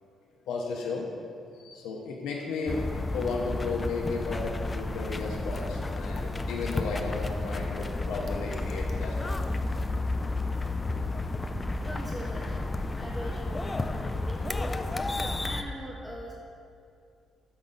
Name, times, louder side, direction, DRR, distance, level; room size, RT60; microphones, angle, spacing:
voice 1, 0.5-1.1 1.5-9.4, left 4 dB, 90° left, -1 dB, 0.6 m, -34 dB
sound 1, 2.7-15.6, left 2 dB, 25° left, 0.3 m, -32 dB
sound 2, 5.6-5.7 6.2-6.3 6.7-6.8 7.8-7.9 8.3-9.0 9.4-9.5, left 4 dB, 45° left, 0.7 m, -42 dB
Musical instrument, 8.3-15.3, right 3 dB, 65° right, 1.1 m, -51 dB
voice 2, 11.8-14.7 15.4-16.3, equal, 10° right, -3 dB, 0.7 m, -42 dB
6.1 x 3.9 x 5.4 m, 2.5 s
cardioid pair, 90°, 0 cm